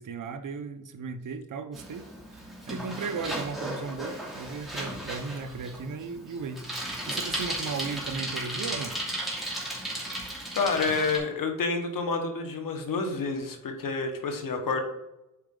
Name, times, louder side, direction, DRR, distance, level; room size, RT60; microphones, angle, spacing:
voice 1, 0.0-2.1 2.7-8.9, right 5 dB, 70° right, 9 dB, 0.9 m, -36 dB
Bicycle, 1.7-11.2, right 1 dB, ahead, 2.8 m, -35 dB
voice 2, 10.5-14.8, left 4 dB, 90° left, 4 dB, 1.4 m, -29 dB
8.6 x 4.8 x 3.8 m, 0.91 s
cardioid pair, 90°, 32 cm